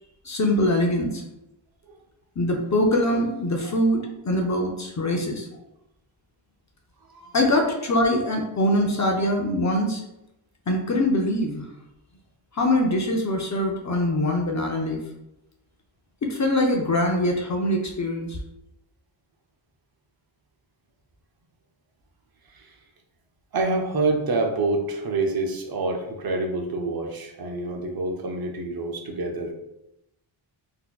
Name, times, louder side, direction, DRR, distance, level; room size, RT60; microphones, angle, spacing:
voice 1, 0.2-1.2 2.4-5.5 7.3-10.0 10.7-11.6 12.5-15.0 16.2-18.4, left 1 dB, 35° left, 1 dB, 0.4 m, -23 dB
voice 2, 23.5-29.5, right 3 dB, 50° right, 3 dB, 0.6 m, -27 dB
4.0 x 2.7 x 2.2 m, 0.88 s
wide cardioid pair, 145°, 50 cm